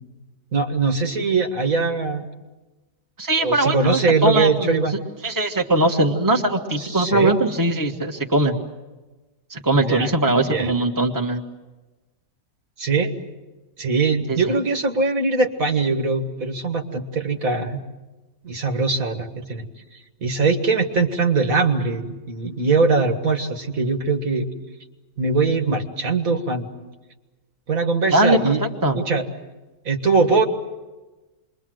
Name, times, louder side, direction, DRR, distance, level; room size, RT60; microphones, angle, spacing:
voice 1, 0.5-2.3 3.4-4.9 6.8-7.3 9.7-10.1 10.5-10.7 12.8-13.1 13.8-17.8 18.4-19.7 20.2-24.5 25.2-26.7 27.7-28.6 28.9-29.2 29.9-30.4, right 4 dB, 65° right, 5 dB, 2.2 m, -21 dB
voice 2, 3.2-4.8 5.2-8.5 9.5-11.4 14.3-14.4 28.1-29.0, right 1 dB, 15° right, 2 dB, 1.6 m, -20 dB
28.0 x 22.5 x 7.8 m, 1.2 s
omnidirectional pair, 1.6 m